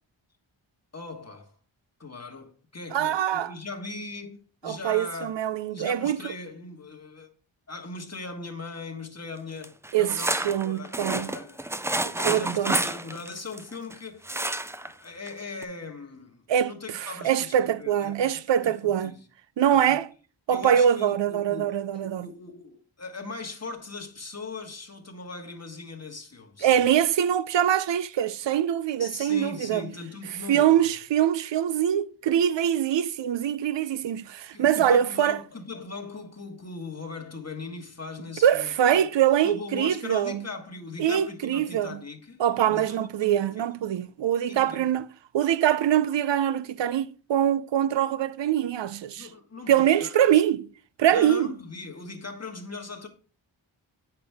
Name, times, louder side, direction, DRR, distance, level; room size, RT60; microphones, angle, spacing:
voice 1, 0.9-1.5 2.0-7.3 7.7-11.6 12.1-14.5 14.8-19.2 19.7-20.0 20.5-21.7 22.0-26.8 29.0-30.9 34.5-39.1 39.4-42.4 42.7-43.5 44.5-44.9 49.1-50.4 51.1-53.1, left 3 dB, 30° left, 1.4 m, -40 dB
voice 2, 2.9-3.5 4.6-6.2 9.9-11.4 12.0-12.7 16.5-19.1 19.6-20.1 20.5-22.3 26.6-29.9 30.5-35.4 38.4-40.4 41.0-42.0 42.4-45.1 45.3-49.3 49.7-50.7 51.0-51.5, right 10 dB, 65° right, 0.5 m, -24 dB
sound 1, 9.6-13.9 14.2-14.9 15.3-15.4 15.6-15.7, right 1 dB, 5° right, 0.3 m, -29 dB
7.7 x 5.9 x 3.4 m
cardioid pair, 50°, 48 cm